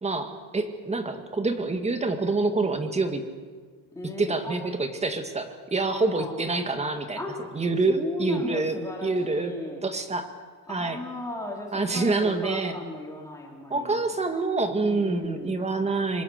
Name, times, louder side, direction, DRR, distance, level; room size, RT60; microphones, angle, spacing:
voice 1, 0.0-3.2 4.2-7.2 7.5-9.5 9.8-10.3 10.7-11.0 11.7-12.8 13.7-16.2, right 3 dB, 15° right, 7 dB, 2.0 m, -26 dB
voice 2, 3.9-4.6 5.9-6.7 7.2-7.5 7.9-9.8 10.7-14.0 14.8-15.7, left 2 dB, 10° left, -1 dB, 4.5 m, -36 dB
27.0 x 24.5 x 6.7 m, 1.5 s
cardioid pair, 165°, 42 cm